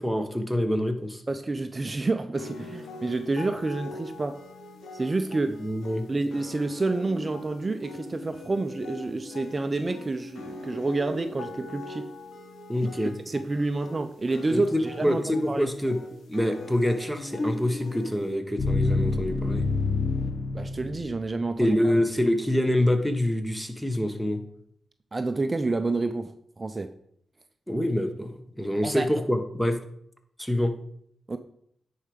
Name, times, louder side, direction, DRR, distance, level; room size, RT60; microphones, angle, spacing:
voice 1, 0.0-1.2 5.6-6.1 12.7-13.1 14.5-16.0 16.3-19.7 21.6-24.4 27.7-29.8 30.4-30.7, left 1 dB, 5° left, 1.4 m, -26 dB
voice 2, 1.3-4.4 4.9-5.6 6.1-12.1 12.8-15.7 20.5-21.9 25.1-26.9 28.8-29.1 31.3-31.4, right 3 dB, 35° right, 0.6 m, -29 dB
sound 1, 2.3-18.4, left 2 dB, 85° left, 1.8 m, -43 dB
sound 2, 17.4-21.5, left 3 dB, 55° left, 0.9 m, -28 dB
9.8 x 4.8 x 5.2 m
cardioid pair, 55°, 0 cm